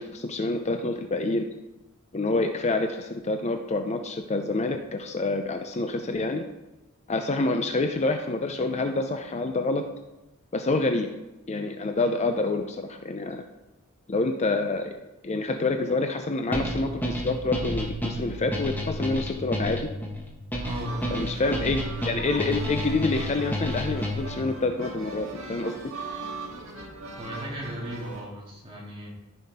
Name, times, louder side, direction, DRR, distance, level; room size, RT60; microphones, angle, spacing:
voice 1, 0.0-1.5 2.1-6.4 7.1-9.8 10.5-11.1 11.5-13.4 14.1-14.9 15.2-19.9 21.1-21.8 22.0-25.7, left 2 dB, 30° left, 6 dB, 0.5 m, -27 dB
sound 1, 16.5-24.4, left 1 dB, 10° left, 1.3 m, -30 dB
voice 2, 20.6-21.4 27.2-29.1, equal, 25° right, -3 dB, 2.4 m, -36 dB
sound 2, 20.6-28.2, right 3 dB, 65° right, 1.7 m, -39 dB
14.5 x 5.6 x 4.2 m, 1.0 s
head